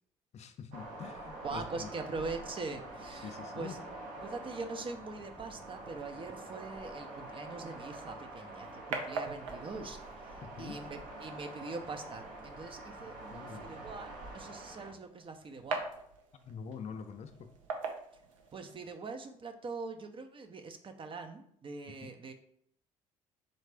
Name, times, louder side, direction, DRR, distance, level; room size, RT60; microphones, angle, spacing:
voice 1, 0.3-1.9 3.2-3.8 10.4-10.8 13.3-13.7 16.5-17.5 21.9-22.1, left 6 dB, 45° left, 8 dB, 0.5 m, -45 dB
sound 1, 0.7-14.9, right 2 dB, 60° right, 1.0 m, -46 dB
voice 2, 1.4-3.8 4.2-15.8 18.5-22.3, right 3 dB, 30° right, 6 dB, 0.6 m, -43 dB
sound 2, 7.9-18.9, right 4 dB, 80° right, 0.5 m, -44 dB
4.0 x 3.2 x 3.4 m, 0.66 s
figure-of-eight pair, 50°, 16 cm